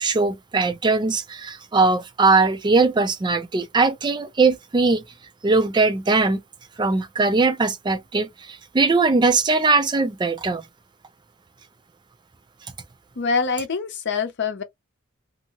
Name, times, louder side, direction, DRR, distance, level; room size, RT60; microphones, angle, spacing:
voice 1, 0.0-5.0 5.4-6.4 6.8-10.6, right 3 dB, 20° right, 0.4 m, -20 dB
voice 2, 13.2-14.6, left 5 dB, 55° left, 0.6 m, -24 dB
2.7 x 2.6 x 2.8 m
head